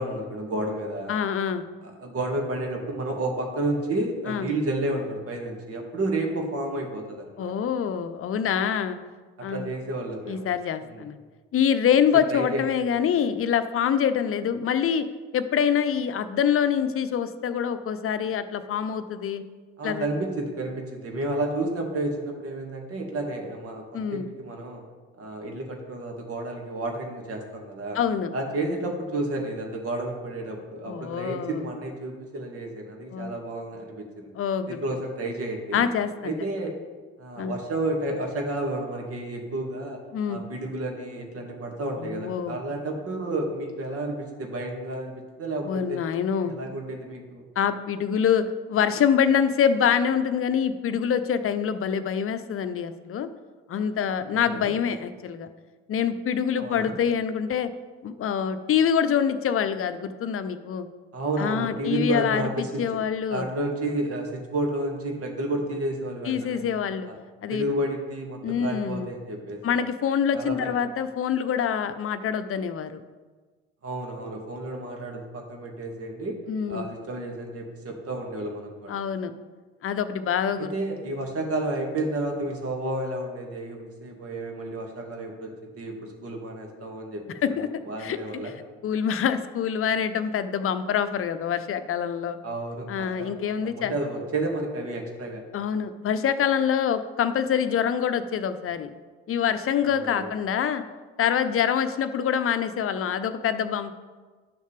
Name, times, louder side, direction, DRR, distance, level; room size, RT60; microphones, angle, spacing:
voice 1, 0.0-1.1 1.8-7.5 9.4-10.5 10.8-11.1 12.3-12.6 19.8-24.8 25.2-28.0 28.3-34.3 34.7-35.8 36.2-36.8 37.2-40.0 40.3-46.0 46.4-47.4 54.3-54.7 56.6-57.0 61.1-62.8 63.3-66.6 67.1-67.2 67.5-69.6 70.3-70.7 73.8-76.4 76.7-79.0 80.6-87.6 87.9-88.5 92.4-93.4 93.6-95.4 99.8-100.3, right 2 dB, 45° right, 2 dB, 2.1 m, -31 dB
voice 2, 1.1-1.6 4.3-4.5 7.4-9.0 9.4-9.7 10.3-11.2 11.5-15.1 15.3-19.4 19.8-20.1 23.9-24.3 27.9-28.3 30.9-31.7 33.1-33.4 34.4-34.8 35.7-36.3 37.4-37.6 40.1-40.4 42.0-42.6 45.6-46.6 47.6-53.3 53.7-55.5 55.9-57.7 58.0-60.9 61.4-63.5 66.2-67.1 67.4-67.6 68.4-69.1 69.6-73.0 76.5-76.9 78.9-79.3 79.8-80.7 87.4-88.2 88.4-88.5 88.8-92.4 92.9-93.9 95.5-98.9 99.3-100.8 101.2-103.9, left 8 dB, 40° left, 10 dB, 0.8 m, -25 dB
11.0 x 6.4 x 3.4 m, 1.3 s
hypercardioid pair, 55°, 32 cm